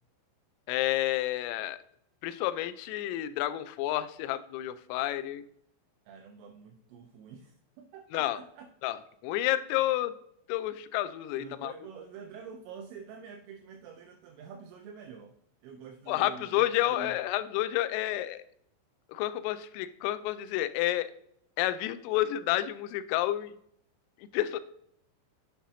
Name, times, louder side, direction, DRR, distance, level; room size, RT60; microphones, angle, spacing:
voice 1, 0.7-1.8 2.2-5.4 8.1-8.4 8.8-9.0 9.2-10.2 10.5-11.7 16.1-18.4 19.1-21.1 21.6-23.5 24.2-24.6, left 14 dB, 85° left, 12 dB, 3.1 m, -30 dB
voice 2, 6.1-8.7 11.4-15.3 15.6-17.2, right 6 dB, 80° right, 4 dB, 2.9 m, -47 dB
8.7 x 7.4 x 2.7 m, 0.71 s
omnidirectional pair, 5.9 m